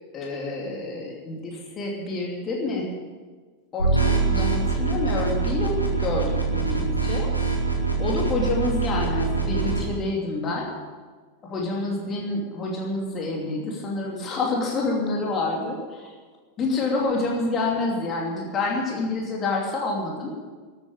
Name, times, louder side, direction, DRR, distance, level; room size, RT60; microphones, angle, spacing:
voice 1, 0.1-2.9 3.7-7.3 8.0-10.7 11.4-16.1 16.6-20.4, left 2 dB, 25° left, -1 dB, 2.8 m, -28 dB
sound 1, 3.8-9.8, right 4 dB, 90° left, 2.6 m, -24 dB
13.5 x 9.1 x 8.9 m, 1.4 s
figure-of-eight pair, 90°, 0 cm